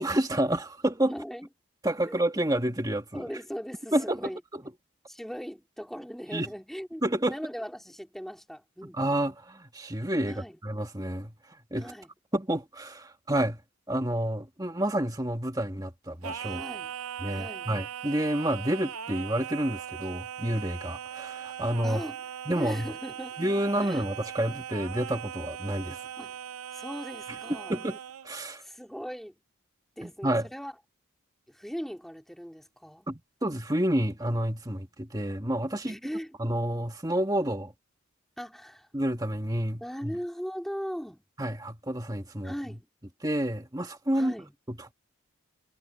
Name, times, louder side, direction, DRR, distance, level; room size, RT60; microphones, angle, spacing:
voice 1, 0.0-1.1 1.8-3.2 3.9-4.6 6.3-6.5 7.0-7.3 8.9-11.9 12.3-13.6 13.9-16.6 17.2-22.0 22.5-22.9 23.4-26.0 27.7-28.0 28.2-28.6 30.0-30.5 33.1-35.9 36.4-37.7 38.9-40.2 41.4-42.5 43.2-44.3 44.7-44.9, right 1 dB, 15° right, 1.6 m, -29 dB
voice 2, 1.1-1.5 2.0-2.2 3.1-4.4 5.1-9.2 10.2-10.6 11.8-12.1 16.4-16.9 17.3-17.7 21.8-22.2 22.5-23.4 23.8-24.0 26.2-26.4 26.7-27.7 28.6-29.4 30.0-30.7 31.5-33.1 35.9-36.4 38.4-38.9 39.8-41.2 42.4-42.9 44.1-44.5, equal, ahead, 3.2 m, -39 dB
Singing, 16.2-28.3, right 9 dB, 90° right, 0.6 m, -39 dB
head